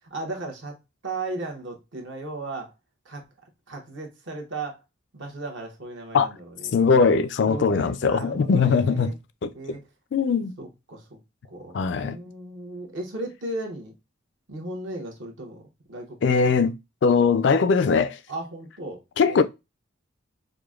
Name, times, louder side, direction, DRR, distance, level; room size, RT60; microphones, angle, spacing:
voice 1, 0.1-0.7 1.0-2.7 3.0-3.2 3.7-4.8 5.1-7.1 7.5-9.1 9.5-9.8 10.6-11.2 11.5-13.9 14.5-15.6 15.9-16.4 18.3-19.0 19.3-19.4, right 2 dB, 60° right, 1.0 m, -36 dB
voice 2, 6.7-9.1 9.4-9.5 10.1-10.5 11.7-12.2 16.2-16.7 17.0-18.2 19.2-19.4, left 5 dB, 60° left, 0.3 m, -20 dB
4.9 x 2.2 x 2.3 m
head